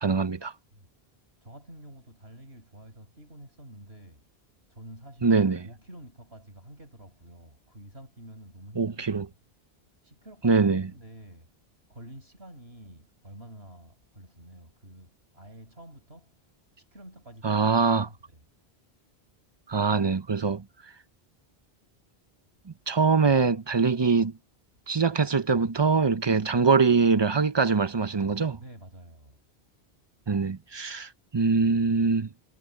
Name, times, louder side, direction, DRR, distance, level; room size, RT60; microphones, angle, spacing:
voice 1, 0.0-0.5 5.2-5.6 8.8-9.3 10.4-10.8 17.4-18.1 19.7-20.6 22.9-24.3 24.9-28.6 30.3-32.3, right 4 dB, 30° right, 0.7 m, -23 dB
voice 2, 1.4-4.3 4.7-9.3 10.0-11.5 11.9-16.3 16.8-18.4 28.6-29.4, right 1 dB, 85° right, 7.8 m, -48 dB
omnidirectional pair, 1.0 m